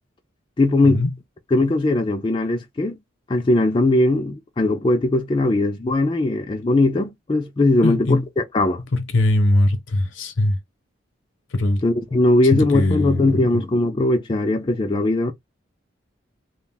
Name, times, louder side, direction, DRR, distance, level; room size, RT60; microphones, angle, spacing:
voice 1, 0.6-1.0 1.5-3.0 3.3-8.8 11.8-15.3, left 2 dB, 25° left, 0.3 m, -19 dB
voice 2, 7.8-8.2 8.9-10.6 11.5-11.8 12.5-13.4, left 1 dB, 75° left, 0.6 m, -20 dB
2.3 x 2.1 x 3.4 m
head